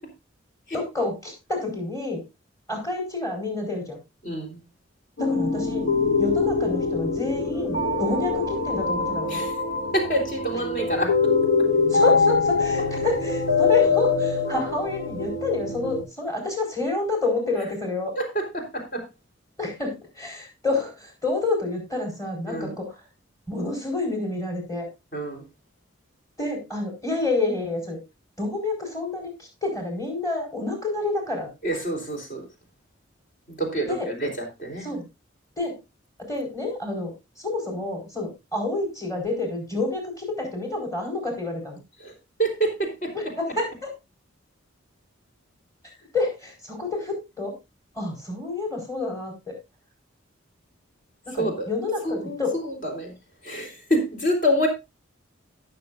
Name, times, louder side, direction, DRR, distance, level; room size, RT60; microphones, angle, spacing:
voice 1, 0.7-2.2 2.7-4.0 5.2-5.9 6.2-9.4 10.5-10.6 11.9-18.1 19.6-23.0 23.5-24.9 26.4-28.0 28.4-31.5 33.9-34.1 34.8-35.0 35.6-35.7 36.3-37.1 37.4-41.8 43.1-43.9 46.1-47.5 47.9-49.6 51.2-52.6, left 2 dB, 15° left, 1 dB, 4.4 m, -28 dB
voice 2, 4.2-4.6 9.3-9.5 9.9-11.2 18.2-19.0 22.5-22.8 25.1-25.4 31.6-32.4 33.5-34.9 42.0-42.1 42.4-43.1 51.4-51.7 52.0-53.1 53.4-54.7, equal, 45° left, 1 dB, 3.6 m, -27 dB
sound 1, 5.2-16.0, left 4 dB, 80° left, 3.4 m, -23 dB
18.0 x 6.9 x 2.5 m, 0.25 s
head